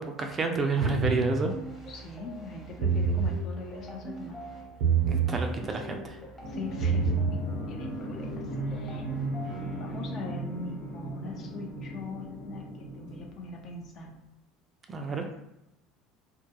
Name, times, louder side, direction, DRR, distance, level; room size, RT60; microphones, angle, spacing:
voice 1, 0.0-1.5 5.1-6.2 14.9-15.3, right 4 dB, 30° right, 3 dB, 0.4 m, -29 dB
voice 2, 0.8-1.1 1.9-4.4 5.3-5.7 6.5-9.0 9.8-14.1 15.0-15.1, left 2 dB, 45° left, 1 dB, 0.5 m, -41 dB
sound 1, 0.8-1.3 2.7-3.3 4.8-5.3 6.7-7.3, right 6 dB, 85° right, 0.5 m, -25 dB
sound 2, 1.5-10.2, right 2 dB, 15° left, 0.9 m, -44 dB
sound 3, 6.4-14.0, equal, 85° left, 1.0 m, -37 dB
2.2 x 2.2 x 2.8 m, 0.87 s
supercardioid pair, 115°, 0 cm